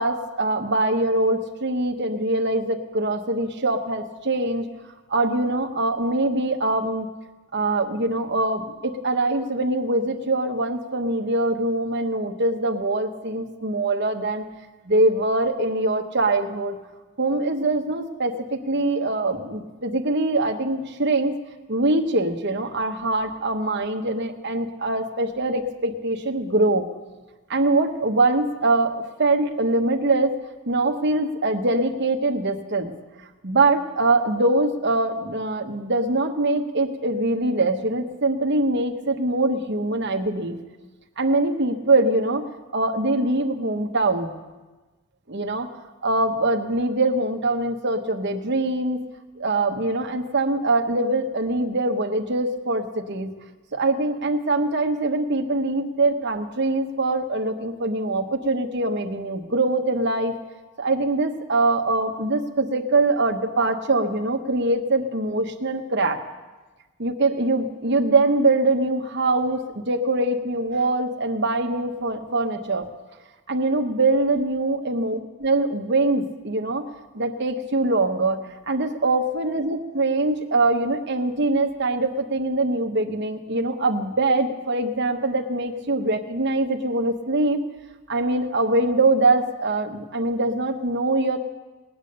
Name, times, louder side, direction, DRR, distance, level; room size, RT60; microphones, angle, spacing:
voice 1, 0.0-4.7 5.1-7.1 7.5-14.4 14.8-16.8 17.2-21.3 21.7-26.9 27.5-30.4 30.7-32.9 33.4-40.6 41.2-42.5 42.7-44.3 45.3-45.7 46.0-49.0 49.4-53.3 53.7-60.3 60.8-66.2 67.0-72.9 73.5-76.8 77.1-87.6 88.1-91.4, right 2 dB, 50° right, 4 dB, 1.1 m, -23 dB
20.0 x 8.6 x 6.6 m, 1.2 s
head